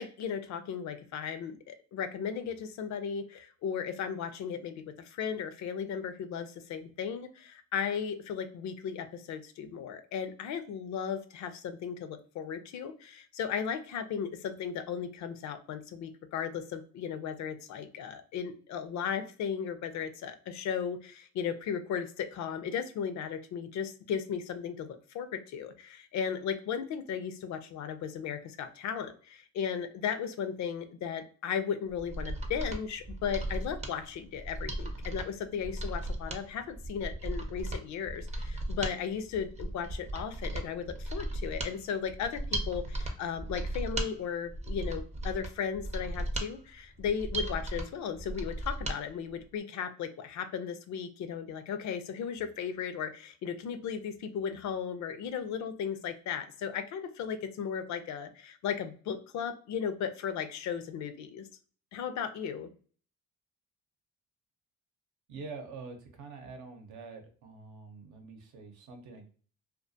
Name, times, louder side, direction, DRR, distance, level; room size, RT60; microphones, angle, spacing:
voice 1, 0.0-61.5 61.9-62.7, left 7 dB, 65° left, 10 dB, 0.5 m, -36 dB
Mechanisms, 31.9-49.0 49.3-49.4, right 1 dB, 25° right, 0.5 m, -36 dB
voice 2, 65.3-69.3, right 4 dB, 80° right, 4 dB, 0.7 m, -46 dB
2.4 x 2.2 x 2.6 m, 0.42 s
cardioid pair, 90°, 30 cm